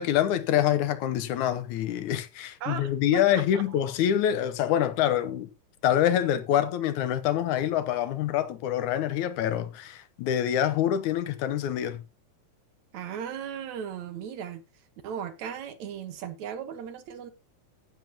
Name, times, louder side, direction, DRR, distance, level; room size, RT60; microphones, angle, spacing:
voice 1, 0.0-5.5 5.8-12.0, left 11 dB, 75° left, 2.2 m, -26 dB
voice 2, 2.6-3.8 12.9-14.6 15.0-17.3, right 8 dB, 70° right, 2.4 m, -36 dB
15.0 x 7.4 x 2.8 m
omnidirectional pair, 3.6 m